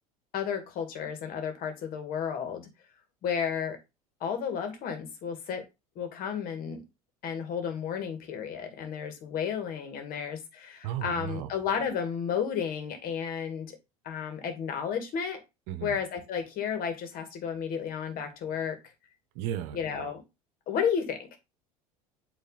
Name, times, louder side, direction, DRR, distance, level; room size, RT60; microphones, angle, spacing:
voice 1, 0.3-2.7 3.2-3.8 4.2-5.6 6.0-6.8 7.2-13.8 14.0-15.4 15.8-18.8 19.7-20.2 20.7-21.4, left 7 dB, 50° left, 2.1 m, -32 dB
voice 2, 10.8-11.5 15.7-16.0 19.3-19.8, right 12 dB, 65° right, 0.9 m, -34 dB
8.3 x 3.4 x 4.1 m
hypercardioid pair, 75°, 19 cm